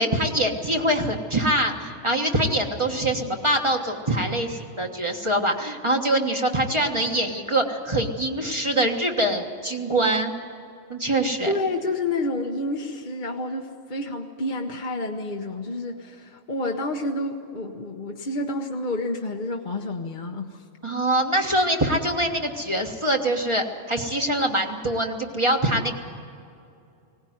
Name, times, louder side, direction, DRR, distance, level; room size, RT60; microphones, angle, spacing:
voice 1, 0.0-10.3 10.9-11.5 20.8-25.9, right 1 dB, 25° right, 2 dB, 1.4 m, -24 dB
voice 2, 11.4-20.6, left 2 dB, 45° left, 2 dB, 1.1 m, -29 dB
19.5 x 17.5 x 9.4 m, 2.5 s
omnidirectional pair, 1.3 m